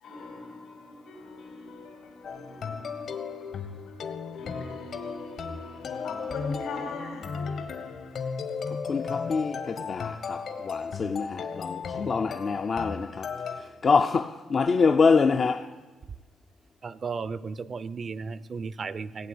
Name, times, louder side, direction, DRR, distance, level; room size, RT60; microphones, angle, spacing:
voice 1, 0.0-7.5, left 3 dB, 85° left, 4.2 m, -42 dB
sound 1, 2.2-13.6, left 5 dB, 65° left, 1.6 m, -35 dB
voice 2, 8.9-13.3 13.8-15.7, left 5 dB, 45° left, 0.6 m, -25 dB
voice 3, 16.8-19.3, right 5 dB, 45° right, 0.6 m, -35 dB
16.0 x 8.7 x 8.5 m
cardioid pair, 90°, 0 cm